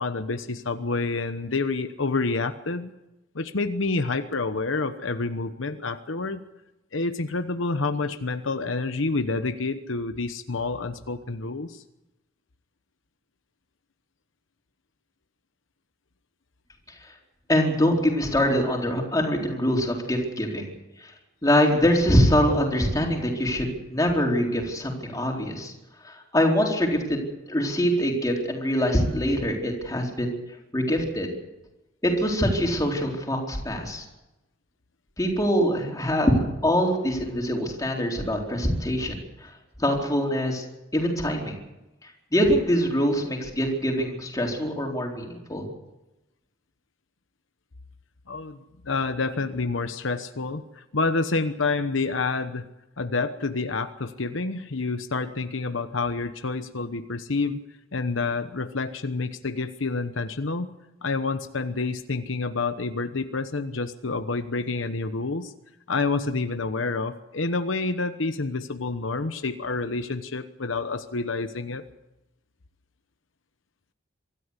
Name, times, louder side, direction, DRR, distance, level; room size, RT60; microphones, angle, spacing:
voice 1, 0.0-2.9 3.3-6.4 6.9-11.8 48.3-48.6 48.8-52.7 53.0-57.6 57.9-60.7 61.0-65.5 65.9-71.8, left 3 dB, 80° left, 9 dB, 1.1 m, -28 dB
voice 2, 17.5-20.7 21.4-25.7 26.0-27.2 27.5-30.4 30.7-31.3 32.0-34.0 35.2-39.2 39.8-40.6 40.9-41.5 42.3-45.7, equal, 20° left, 0 dB, 4.2 m, -24 dB
24.5 x 13.5 x 8.3 m, 0.96 s
head